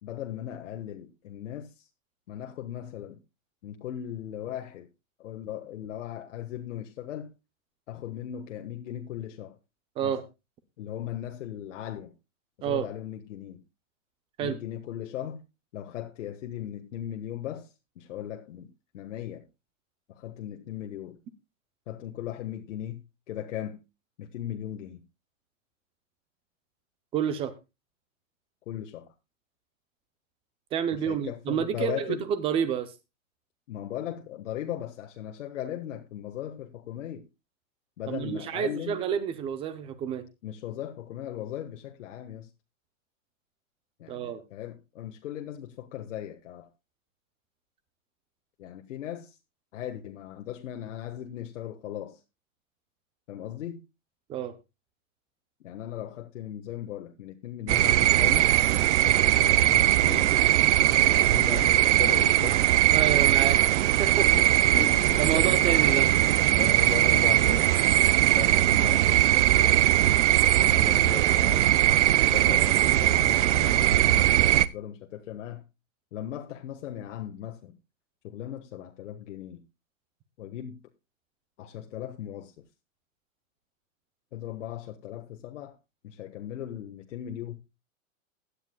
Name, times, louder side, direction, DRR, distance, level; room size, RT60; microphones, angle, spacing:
voice 1, 0.0-1.9 2.3-3.2 3.6-4.9 5.2-7.3 7.9-9.6 10.0-10.1 10.8-12.1 12.6-13.6 14.4-15.4 15.7-18.7 18.9-19.5 20.1-21.2 21.9-23.8 24.2-25.0 28.7-29.1 30.9-32.2 33.7-37.3 38.0-39.0 40.4-42.5 44.0-46.7 48.6-49.4 49.7-52.2 53.3-53.8 55.6-58.5 58.8-60.3 60.8-62.6 64.3-66.1 66.5-67.7 68.3-69.8 70.6-71.9 72.3-75.6 76.1-77.7 78.2-79.6 80.4-80.8 81.6-82.7 84.3-85.8 86.0-87.6, left 11 dB, 60° left, 1.5 m, -38 dB
voice 2, 27.1-27.6 30.7-32.9 38.1-40.2 44.1-44.4 54.3-54.5 62.9-63.6 64.0-64.3 65.2-66.1, right 8 dB, 15° right, 0.6 m, -29 dB
sound 1, 57.7-74.7, right 13 dB, 60° right, 0.7 m, -21 dB
16.5 x 10.5 x 2.2 m
hypercardioid pair, 155°, 40 cm